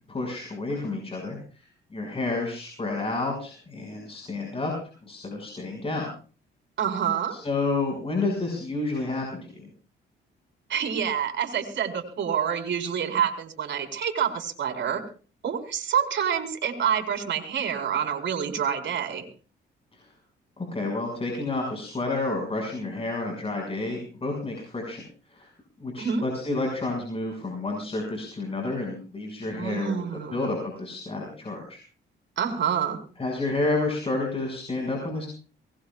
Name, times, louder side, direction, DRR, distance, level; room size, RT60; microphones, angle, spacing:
voice 1, 0.1-4.7 5.0-6.1 7.3-9.7 19.9-20.1 20.6-25.0 25.3-25.5 25.8-31.8 33.2-35.3, left 2 dB, 30° left, 1 dB, 6.3 m, -30 dB
voice 2, 6.8-7.3 10.7-15.0 15.4-19.2 26.0-26.2 29.6-30.4 32.4-33.0, right 8 dB, 65° right, 3 dB, 4.6 m, -27 dB
23.5 x 20.0 x 2.5 m, 0.38 s
cardioid pair, 90°, 20 cm